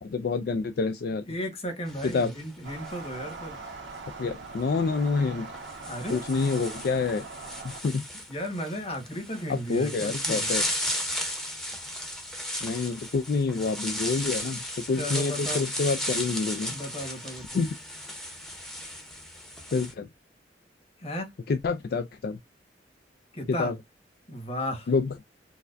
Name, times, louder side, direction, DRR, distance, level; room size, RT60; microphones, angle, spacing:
voice 1, 0.0-1.2 2.0-2.3 4.2-5.5 6.1-7.3 7.6-8.1 9.5-10.7 12.6-16.8 17.5-17.7 19.7-20.1 21.5-22.4 23.5-23.8 24.9-25.1, left 4 dB, 60° left, 0.4 m, -27 dB
voice 2, 1.3-3.6 5.9-6.2 8.3-10.5 15.0-15.6 16.7-17.4 21.0-21.3 23.3-23.8 24.3-24.9, equal, 35° left, 1.3 m, -34 dB
sound 1, 1.9-3.4 4.6-4.8 5.5-19.9, left 1 dB, 5° left, 0.8 m, -35 dB
sound 2, 2.6-7.8, right 4 dB, 90° right, 1.1 m, -41 dB
4.6 x 2.2 x 2.5 m
head